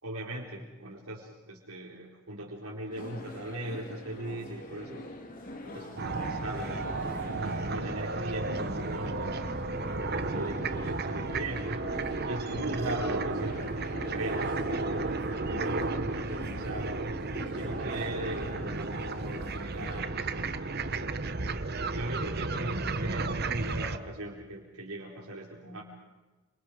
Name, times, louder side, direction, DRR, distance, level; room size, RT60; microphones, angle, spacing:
voice 1, 0.0-5.1 5.6-9.5 10.0-11.8 12.2-17.1 17.6-21.0 21.9-25.8, right 1 dB, 80° right, -4 dB, 4.4 m, -39 dB
sound 1, 2.9-20.0, left 1 dB, 40° left, 2.7 m, -45 dB
sound 2, 6.0-24.0, right 3 dB, 45° right, 1.2 m, -33 dB
29.0 x 27.5 x 5.2 m, 1.2 s
head